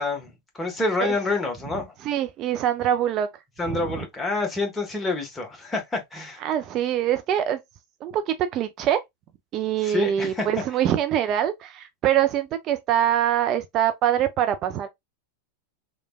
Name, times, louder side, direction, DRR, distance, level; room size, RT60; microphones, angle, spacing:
voice 1, 0.0-1.9 3.6-6.4 9.8-10.5, left 3 dB, 15° left, 1.0 m, -27 dB
voice 2, 2.0-3.3 3.7-4.0 6.4-7.6 8.0-9.0 9.5-14.9, right 11 dB, 40° right, 0.3 m, -24 dB
3.1 x 2.1 x 2.2 m
figure-of-eight pair, 90°, 0 cm